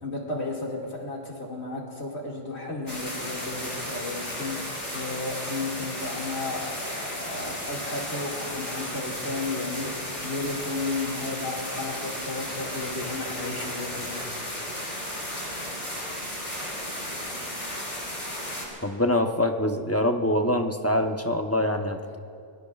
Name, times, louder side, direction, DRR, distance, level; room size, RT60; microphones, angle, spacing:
voice 1, 0.0-14.4 22.0-22.2, left 3 dB, 75° left, -2 dB, 2.5 m, -33 dB
sound 1, 2.9-18.7, left 1 dB, 40° left, 4.5 m, -34 dB
voice 2, 18.8-22.2, left 1 dB, 15° left, 4 dB, 0.7 m, -24 dB
26.5 x 21.5 x 2.4 m, 2.3 s
omnidirectional pair, 1.1 m